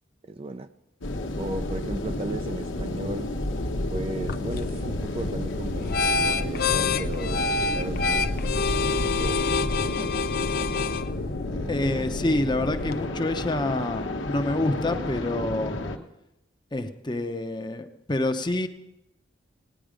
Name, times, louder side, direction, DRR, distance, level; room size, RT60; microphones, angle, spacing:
voice 1, 0.2-0.7 1.4-3.3 3.9-7.5 7.8-8.3 8.7-10.2 11.5-12.1, right 2 dB, 30° right, 9 dB, 0.4 m, -36 dB
sound 1, 1.0-16.0, left 1 dB, 90° left, 1.1 m, -31 dB
sound 2, 4.2-13.1, left 4 dB, 50° left, 0.4 m, -28 dB
voice 2, 11.7-15.8 16.7-18.7, left 2 dB, 25° left, 8 dB, 0.7 m, -27 dB
18.0 x 9.9 x 5.1 m, 0.90 s
head